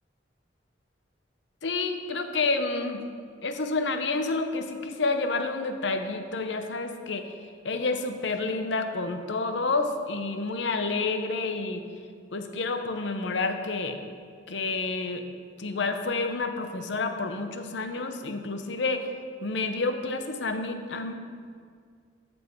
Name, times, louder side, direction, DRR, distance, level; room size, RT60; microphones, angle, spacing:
voice 1, 1.6-3.0 3.4-7.3 7.6-11.8 12.3-14.0 14.5-15.3 15.6-19.1 19.4-21.1, left 3 dB, 70° left, 7 dB, 0.7 m, -29 dB
13.5 x 5.4 x 4.5 m, 2.1 s
head